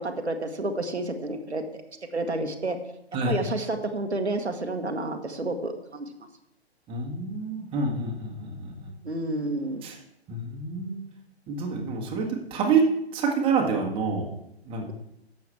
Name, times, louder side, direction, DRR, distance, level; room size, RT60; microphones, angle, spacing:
voice 1, 0.0-1.8 2.1-2.8 3.3-6.0 9.0-9.8, right 2 dB, 85° right, 5 dB, 1.3 m, -30 dB
voice 2, 6.9-8.9 9.8-10.0 10.3-11.0 11.5-12.9 13.1-14.3 14.6-14.8, right 4 dB, 15° right, 0 dB, 1.5 m, -27 dB
11.0 x 7.1 x 4.6 m, 0.81 s
figure-of-eight pair, 125°, 33 cm